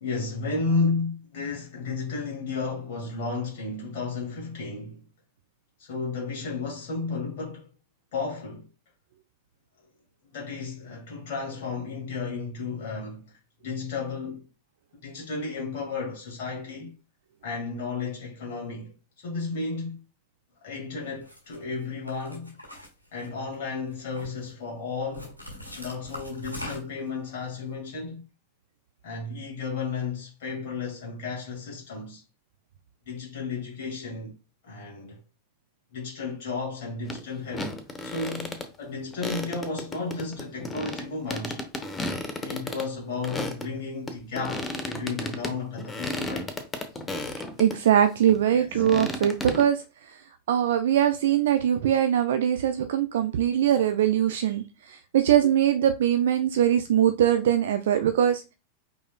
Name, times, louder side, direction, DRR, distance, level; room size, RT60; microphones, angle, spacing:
voice 1, 0.0-5.0 5.8-7.7 8.1-8.7 10.3-14.5 15.0-16.9 17.4-20.0 20.6-22.6 23.1-25.3 25.7-28.2 29.0-32.2 33.1-34.4 34.6-35.2 35.9-37.7 38.0-41.6 42.4-46.5 48.5-48.8, left 4 dB, 50° left, 1.8 m, -33 dB
sound 1, 21.2-21.6 22.1-23.5 23.9-24.5 25.1-27.1, equal, 90° left, 1.6 m, -41 dB
sound 2, 37.0-37.2 37.5-38.7 39.1-43.7 44.1-47.8 48.3-49.6, left 2 dB, 15° left, 0.9 m, -34 dB
voice 2, 47.6-50.2 50.5-58.5, right 10 dB, 60° right, 0.4 m, -22 dB
5.4 x 4.2 x 2.2 m
figure-of-eight pair, 90°, 0 cm